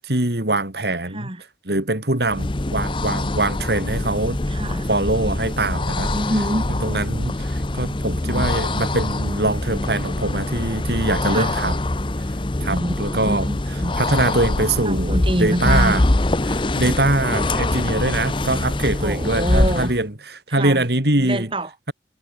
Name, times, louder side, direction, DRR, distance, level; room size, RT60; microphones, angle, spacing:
voice 1, 0.0-1.3 1.6-4.4 4.9-6.1 6.7-11.8 12.6-16.0 16.4-21.5, right 2 dB, 65° right, 3.1 m, -23 dB
sound 1, 2.2-20.0, left 2 dB, 30° left, 0.8 m, -24 dB
voice 2, 4.5-4.9 6.1-6.7 8.2-8.8 11.3-11.6 12.7-13.9 14.8-16.0 19.0-19.9 20.5-20.9 21.2-21.9, right 1 dB, 30° right, 3.9 m, -26 dB
head